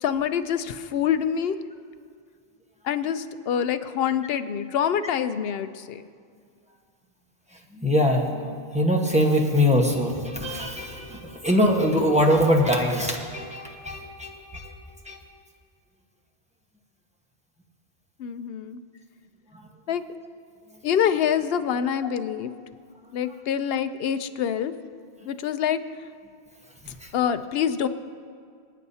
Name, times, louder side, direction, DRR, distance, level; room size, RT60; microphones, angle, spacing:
voice 1, 0.0-1.6 2.8-6.0 18.2-18.8 19.9-20.0 20.8-22.5 23.1-24.7 25.3-25.8 27.1-27.9, left 8 dB, 70° left, 11 dB, 0.8 m, -26 dB
voice 2, 7.7-14.7 15.0-15.2 19.5-19.6 26.8-27.1, equal, 5° right, 0 dB, 1.1 m, -23 dB
26.0 x 9.4 x 2.8 m, 2.1 s
omnidirectional pair, 1.1 m